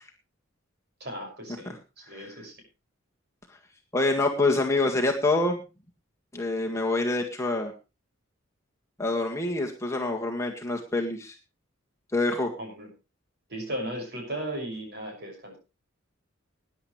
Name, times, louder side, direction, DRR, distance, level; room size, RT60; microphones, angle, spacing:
voice 1, 1.0-1.8 2.1-2.5 12.6-12.9 13.5-15.5, right 1 dB, 50° right, 2 dB, 6.3 m, -36 dB
voice 2, 3.9-5.6 6.3-7.7 9.0-11.3 12.1-12.5, left 2 dB, 15° left, 1 dB, 1.8 m, -26 dB
20.5 x 10.5 x 3.3 m, 0.29 s
head